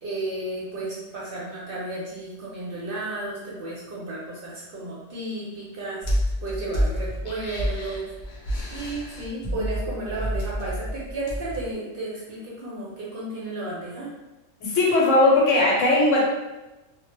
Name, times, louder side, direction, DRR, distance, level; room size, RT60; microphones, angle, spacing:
voice 1, 0.0-8.1 8.7-14.1, right 2 dB, 55° right, -6 dB, 0.7 m, -33 dB
sound 1, 6.0-11.7, equal, 55° left, 0.5 m, -29 dB
voice 2, 14.6-16.3, left 2 dB, 80° left, -3 dB, 1.0 m, -18 dB
2.1 x 2.1 x 2.9 m, 1.0 s
omnidirectional pair, 1.3 m